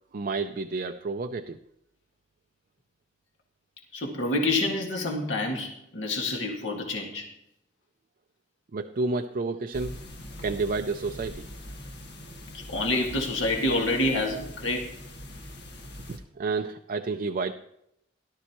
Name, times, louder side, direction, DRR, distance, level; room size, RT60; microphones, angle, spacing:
voice 1, 0.1-1.6 8.7-10.0 10.4-11.5 16.1-17.5, right 3 dB, 50° right, 6 dB, 0.5 m, -30 dB
voice 2, 3.9-7.3 12.5-14.9, left 2 dB, 85° left, 1 dB, 2.0 m, -28 dB
sound 1, 9.7-16.2, left 1 dB, 65° left, 1.8 m, -42 dB
17.0 x 12.0 x 3.0 m, 0.78 s
head